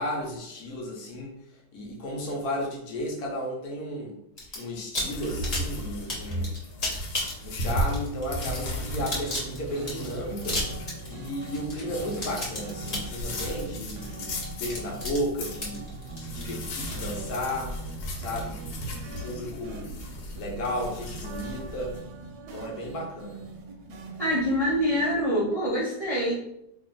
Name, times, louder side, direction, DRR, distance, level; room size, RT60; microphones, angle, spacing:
voice 1, 0.0-1.4 1.7-4.1 4.5-6.5 7.4-10.6 11.1-15.9 16.2-17.7 18.2-18.6 19.0-19.9 20.3-22.0 22.5-23.4, equal, 60° left, -1 dB, 1.1 m, -34 dB
sound 1, 4.4-4.6 4.9-17.2, left 1 dB, 40° left, 0.5 m, -34 dB
sound 2, 5.0-22.0, left 1 dB, 75° left, 1.4 m, -36 dB
sound 3, 5.4-25.2, right 3 dB, 70° right, 1.0 m, -42 dB
voice 2, 24.2-26.3, equal, 35° right, -9 dB, 0.6 m, -25 dB
3.0 x 2.6 x 3.8 m, 0.80 s
omnidirectional pair, 2.1 m